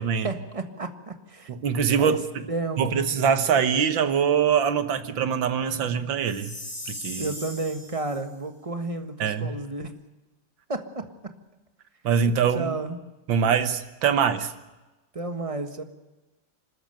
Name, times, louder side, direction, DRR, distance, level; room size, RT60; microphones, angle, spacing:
voice 1, 0.2-1.5 2.0-2.2 2.5-3.1 7.2-9.9 10.7-11.1 12.2-13.0 15.1-15.8, right 3 dB, 20° right, 7 dB, 1.3 m, -32 dB
voice 2, 1.5-2.5 2.8-6.5 6.9-7.3 9.2-9.6 12.0-12.7 13.3-14.5, right 7 dB, 85° right, 10 dB, 1.9 m, -23 dB
Chime, 6.2-8.2, equal, 35° left, 5.3 m, -38 dB
25.5 x 13.5 x 9.1 m, 1.1 s
omnidirectional pair, 2.0 m